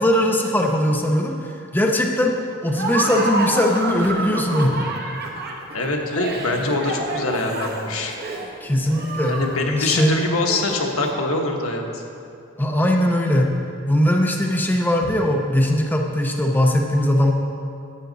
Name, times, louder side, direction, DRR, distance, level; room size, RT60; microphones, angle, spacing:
voice 1, 0.0-4.9 8.6-9.4 9.8-10.2 12.6-13.5 13.9-17.3, left 1 dB, 10° left, 0 dB, 0.6 m, -20 dB
Laughter, 2.7-11.0, right 2 dB, 50° right, 1.0 m, -29 dB
voice 2, 5.7-8.1 9.2-12.0, left 2 dB, 80° left, 2 dB, 1.1 m, -23 dB
11.5 x 8.1 x 4.0 m, 2.5 s
head